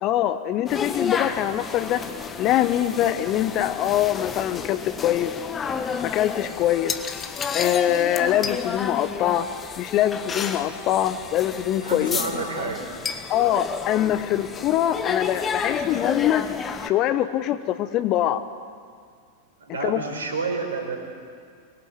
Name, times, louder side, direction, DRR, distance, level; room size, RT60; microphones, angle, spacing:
voice 1, 0.0-2.0 2.4-5.3 6.0-6.9 7.5-9.5 9.8-12.2 13.3-16.4 16.8-18.4 19.8-20.0, left 12 dB, 35° left, 12 dB, 1.1 m, -23 dB
sound 1, 0.7-16.9, left 6 dB, 20° left, 1.4 m, -31 dB
voice 2, 11.8-12.9 19.6-21.0, right 4 dB, 70° right, 3 dB, 4.2 m, -29 dB
24.0 x 21.0 x 7.8 m, 2.1 s
figure-of-eight pair, 90°, 0 cm